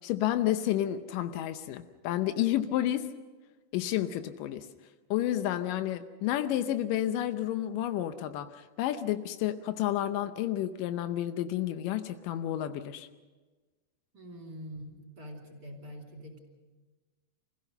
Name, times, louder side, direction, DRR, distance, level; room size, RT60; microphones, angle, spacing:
voice 1, 0.0-3.1 3.7-4.7 5.1-13.1, left 12 dB, 85° left, 9 dB, 1.9 m, -30 dB
voice 2, 14.1-16.4, equal, 25° right, 2 dB, 4.3 m, -44 dB
28.0 x 16.5 x 6.7 m, 1.3 s
omnidirectional pair, 5.0 m